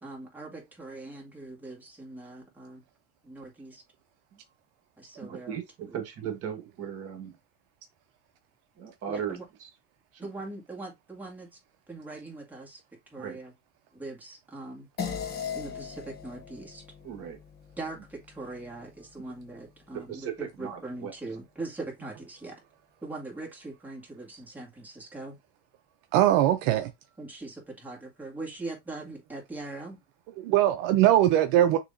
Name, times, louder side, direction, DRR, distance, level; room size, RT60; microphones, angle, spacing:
voice 1, 0.0-2.8 3.2-3.8 5.0-5.6 9.1-9.5 10.2-11.5 11.9-12.8 13.1-13.5 13.9-14.9 15.5-16.8 17.8-22.6 23.0-25.4 27.2-30.0, right 2 dB, 5° right, 2.1 m, -41 dB
voice 2, 5.2-7.4 8.8-9.7 10.1-10.3 13.2-13.4 17.0-17.4 18.0-18.1 19.2-19.3 19.9-21.1, right 8 dB, 40° right, 1.6 m, -37 dB
sound 1, 15.0-19.7, left 7 dB, 25° left, 1.0 m, -39 dB
voice 3, 26.1-26.9 30.4-31.8, right 12 dB, 60° right, 0.7 m, -21 dB
6.5 x 3.0 x 2.7 m
supercardioid pair, 135°, 37 cm